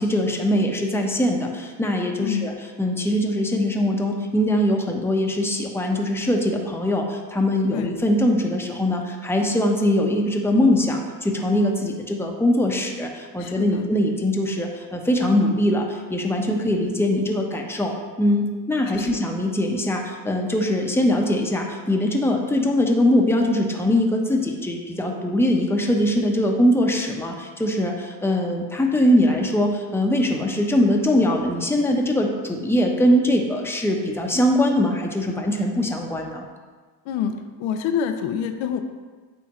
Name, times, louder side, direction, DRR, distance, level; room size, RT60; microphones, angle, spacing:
voice 1, 0.0-2.5 2.8-17.9 18.2-36.4, left 1 dB, 5° left, 1 dB, 1.0 m, -22 dB
voice 2, 2.2-2.5 7.7-7.9 13.4-13.9 16.7-16.9 18.9-19.2 37.1-37.3 37.6-38.8, left 8 dB, 75° left, 7 dB, 0.7 m, -27 dB
9.3 x 3.5 x 3.1 m, 1.4 s
hypercardioid pair, 55°, 48 cm